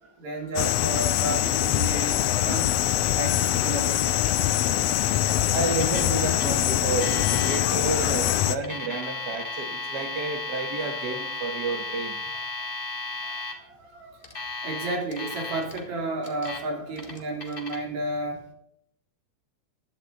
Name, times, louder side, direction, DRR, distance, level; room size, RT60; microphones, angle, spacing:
voice 1, 0.0-2.7 3.1-4.0 4.5-5.2 6.1-6.3 6.7-6.9 7.5-7.9 8.9-9.0 10.9-11.0 11.5-11.6 13.2-18.5, right 2 dB, 65° right, 1 dB, 4.1 m, -33 dB
sound 1, 0.6-8.6, left 12 dB, 70° left, 1.7 m, -24 dB
voice 2, 5.5-12.1, right 3 dB, 40° right, 5 dB, 1.9 m, -30 dB
Alarm, 5.8-6.1 6.4-6.5 7.0-7.6 8.5-13.5 14.2-15.8 16.2-16.6 16.9-17.8, left 3 dB, 25° left, 1.2 m, -34 dB
16.5 x 11.5 x 4.1 m, 0.72 s
omnidirectional pair, 3.5 m